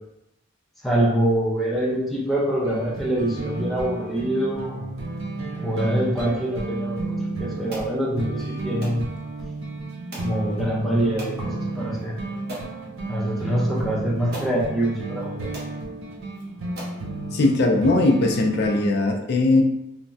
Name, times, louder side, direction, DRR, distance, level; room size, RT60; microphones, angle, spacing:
voice 1, 0.8-4.9 5.6-9.1 10.1-12.1 13.1-15.5, right 1 dB, ahead, -6 dB, 0.6 m, -25 dB
sound 1, 2.6-18.8, right 2 dB, 80° right, 0.5 m, -32 dB
sound 2, 7.7-7.9 8.8-9.0 10.1-10.4 11.2-11.4 12.0-12.1 12.5-12.7 13.8-13.9 14.3-14.6 15.2-15.3 15.5-15.7 16.3-16.4 16.8-17.0, right 1 dB, 45° right, 0.8 m, -37 dB
voice 2, 17.3-19.6, left 2 dB, 50° left, 2 dB, 0.4 m, -19 dB
3.1 x 2.2 x 2.6 m, 0.87 s
head